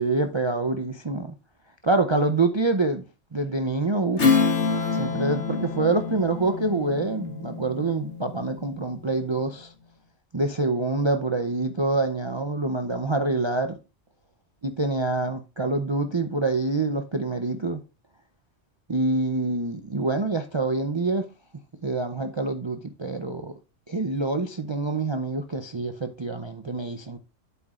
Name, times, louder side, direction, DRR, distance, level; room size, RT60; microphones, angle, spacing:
voice 1, 0.0-1.3 1.8-3.0 3.3-4.5 4.9-9.7 10.3-13.8 14.8-17.8 18.9-21.3 21.8-23.5 23.9-27.2, right 3 dB, 35° right, 0.5 m, -26 dB
Strum, 4.2-9.1, left 4 dB, 65° left, 1.6 m, -26 dB
9.2 x 8.0 x 2.4 m
omnidirectional pair, 1.3 m